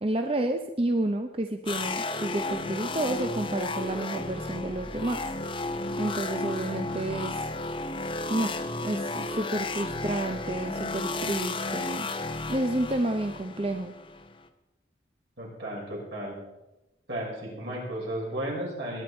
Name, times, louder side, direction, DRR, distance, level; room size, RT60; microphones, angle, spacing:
voice 1, 0.0-5.2 6.0-7.4 8.3-12.1 12.5-13.9, right 1 dB, 30° right, 5 dB, 0.6 m, -30 dB
sound 1, 1.7-14.5, left 2 dB, 25° left, 0.8 m, -33 dB
voice 2, 15.4-16.4 17.1-19.0, right 1 dB, 70° right, -3 dB, 5.9 m, -34 dB
21.0 x 10.5 x 4.4 m, 1.0 s
head